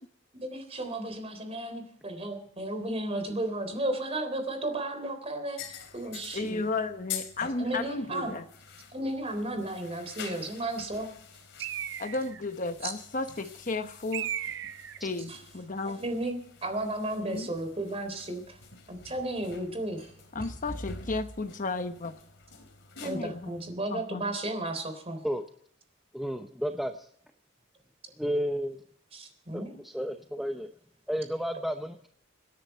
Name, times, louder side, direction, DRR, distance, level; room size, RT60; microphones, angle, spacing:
voice 1, 0.3-5.6 5.9-6.6 7.6-8.4 8.9-11.1 12.8-12.9 15.3-15.4 15.9-18.5 18.9-20.1 23.0-25.2 29.1-29.8, right 1 dB, 30° right, 7 dB, 3.6 m, -34 dB
sound 1, 5.6-23.7, left 5 dB, 60° left, 3.3 m, -46 dB
voice 2, 6.3-8.4 12.0-14.3 15.0-16.0 17.3-17.5 20.3-22.2 23.0-23.5 23.9-24.2, left 3 dB, 40° left, 8 dB, 1.0 m, -33 dB
Bird, 11.6-12.5 14.1-15.0, right 10 dB, 60° right, 0.8 m, -35 dB
voice 3, 26.1-27.1 28.2-28.8 29.5-30.7 31.1-32.1, equal, ahead, 5 dB, 0.8 m, -32 dB
27.0 x 10.0 x 4.4 m, 0.66 s
head